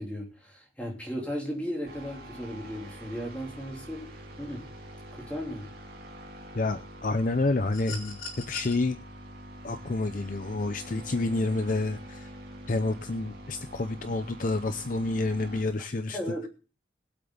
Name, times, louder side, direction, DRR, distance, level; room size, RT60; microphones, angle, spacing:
voice 1, 0.0-4.1 4.4-4.6 5.1-5.7 16.1-16.5, equal, 5° left, -1 dB, 3.3 m, -35 dB
sound 1, 1.8-15.6, equal, 50° right, 2.7 m, -45 dB
voice 2, 6.5-9.0 9.6-12.3 12.7-16.2, left 2 dB, 45° left, 10 dB, 0.6 m, -29 dB
sound 2, 7.7-8.7 10.2-10.4, left 5 dB, 80° left, 4.8 m, -40 dB
20.5 x 7.9 x 3.9 m, 0.35 s
head